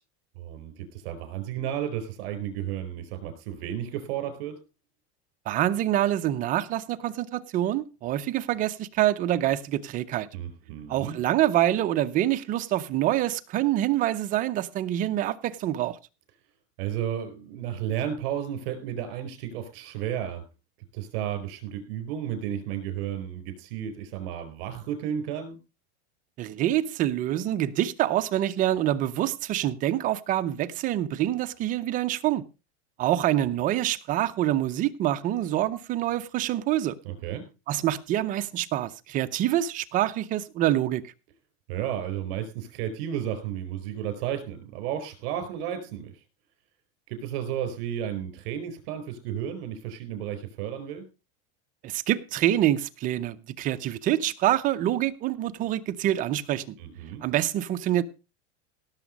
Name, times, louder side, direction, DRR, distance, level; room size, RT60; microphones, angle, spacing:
voice 1, 0.3-4.6 10.3-11.2 16.8-20.4 20.9-25.6 37.0-37.4 41.7-46.1 47.1-51.1 56.8-57.2, right 10 dB, 55° right, 4.6 m, -33 dB
voice 2, 5.5-10.3 10.9-16.0 26.4-32.4 33.0-37.0 37.7-41.1 51.8-56.7 57.2-58.0, right 13 dB, 25° right, 0.6 m, -26 dB
17.0 x 7.1 x 5.2 m
supercardioid pair, 165°, 33 cm